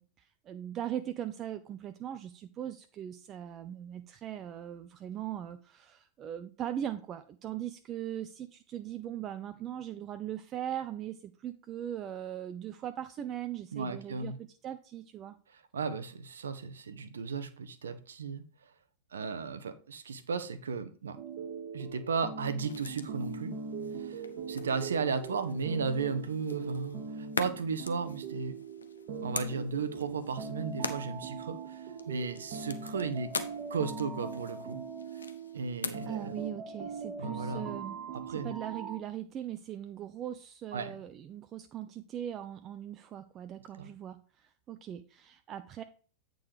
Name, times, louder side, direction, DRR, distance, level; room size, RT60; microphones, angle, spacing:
voice 1, 0.0-15.4 36.1-38.0 38.3-45.8, right 11 dB, 30° right, 9 dB, 0.4 m, -40 dB
voice 2, 13.7-14.4 15.5-18.4 19.1-21.2 21.7-23.5 23.9-28.6 29.2-33.3 33.7-34.8 35.5-36.3 37.2-37.7 38.1-38.5 40.7-40.9 43.8-43.9, right 5 dB, 70° right, 12 dB, 0.7 m, -35 dB
sound 1, 21.2-39.0, right 5 dB, 45° right, 1.0 m, -41 dB
sound 2, 22.7-36.5, left 5 dB, 75° left, 0.5 m, -44 dB
8.5 x 3.8 x 4.8 m, 0.42 s
figure-of-eight pair, 90°, 0 cm